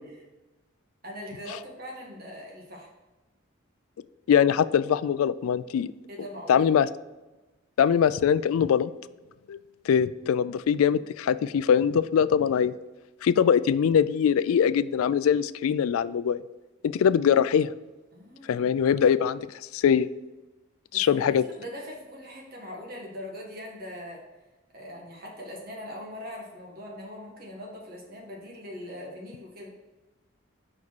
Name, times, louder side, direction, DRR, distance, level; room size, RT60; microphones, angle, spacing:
voice 1, 1.0-2.9 6.1-6.6 18.1-18.7 20.9-24.2 24.7-29.7, left 1 dB, 45° right, -1 dB, 1.7 m, -41 dB
voice 2, 4.3-5.9 6.5-6.9 7.8-8.9 9.5-9.6 9.8-12.7 13.2-16.4 16.8-17.7 18.5-20.1 20.9-21.4, left 8 dB, 90° left, 15 dB, 0.3 m, -22 dB
5.4 x 4.9 x 6.1 m, 1.1 s
head